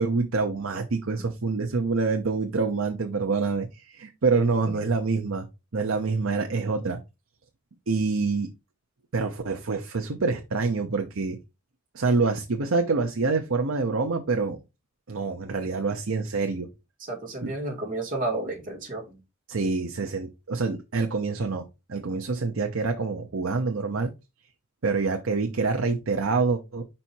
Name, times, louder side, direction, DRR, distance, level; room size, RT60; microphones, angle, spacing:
voice 1, 0.0-5.5 5.7-7.0 7.9-8.5 9.1-11.4 11.9-14.6 15.1-16.7 17.4-17.5 19.5-24.1 24.8-26.8, right 4 dB, 75° right, 0.7 m, -26 dB
voice 2, 17.0-19.2, right 2 dB, 40° right, 2.1 m, -32 dB
5.5 x 4.3 x 4.4 m
head